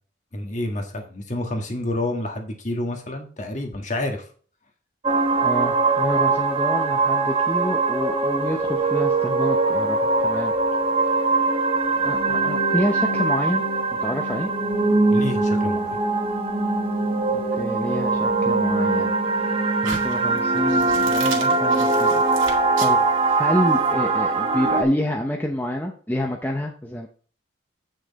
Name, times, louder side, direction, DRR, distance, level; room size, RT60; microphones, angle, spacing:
voice 1, 0.3-4.3 15.1-16.0, left 1 dB, 35° left, 3 dB, 1.7 m, -29 dB
sound 1, 5.0-24.8, right 3 dB, 25° right, 1.2 m, -22 dB
voice 2, 5.4-10.5 12.0-13.7 13.9-14.5 17.3-19.1 19.4-19.5 19.8-22.2 22.5-23.0 23.4-27.1, equal, 10° left, 2 dB, 0.7 m, -28 dB
sound 2, 19.8-23.9, right 5 dB, 85° right, 2.2 m, -35 dB
8.7 x 6.5 x 4.1 m, 0.43 s
head